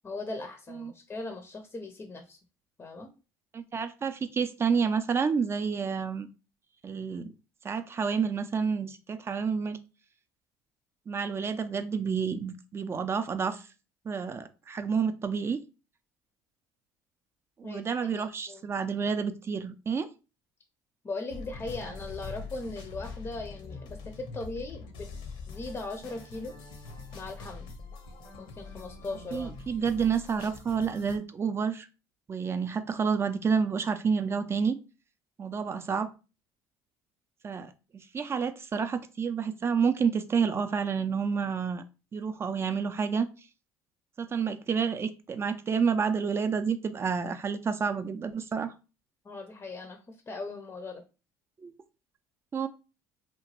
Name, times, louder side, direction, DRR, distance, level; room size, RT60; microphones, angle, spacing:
voice 1, 0.0-2.4 2.8-3.1 17.6-17.9 18.1-18.7 21.0-25.1 25.5-26.6 27.1-27.7 28.4-29.5 49.2-51.0, left 2 dB, 30° left, 5 dB, 0.5 m, -39 dB
voice 2, 3.5-6.3 6.8-7.3 7.6-9.8 11.1-13.7 14.1-15.6 17.6-20.1 29.3-31.9 32.3-34.8 35.4-36.1 37.4-41.8 42.1-43.3 44.2-48.7 51.6-51.7 52.5-52.7, right 6 dB, 30° right, 9 dB, 0.4 m, -29 dB
sound 1, 21.3-31.2, left 4 dB, 70° left, 0.7 m, -43 dB
2.9 x 2.2 x 2.9 m, 0.31 s
supercardioid pair, 80°, 9 cm